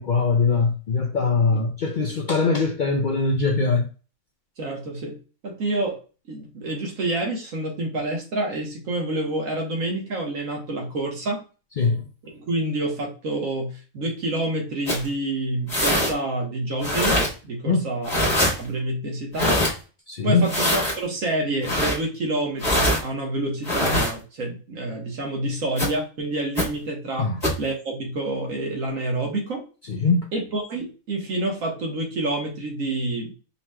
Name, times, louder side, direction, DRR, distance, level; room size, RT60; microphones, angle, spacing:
voice 1, 0.0-3.9 11.8-12.1 17.7-17.9 20.1-20.5 27.2-27.4 29.9-30.3, left 4 dB, 55° left, 0.5 m, -22 dB
voice 2, 4.6-5.2 5.4-6.0 6.3-11.4 12.3-17.2 17.4-18.3 18.6-19.5 20.2-27.3 27.6-29.6 30.3-33.4, right 2 dB, 80° right, 1.5 m, -28 dB
sound 1, 14.9-15.1 15.7-16.1 16.8-17.3 18.0-18.5 19.4-19.7 20.4-20.9 21.6-22.0 22.6-23.0 23.6-24.1 25.8-25.9 26.6-26.7 27.4-27.6, left 1 dB, 30° left, 1.7 m, -22 dB
5.4 x 3.0 x 2.3 m
omnidirectional pair, 1.4 m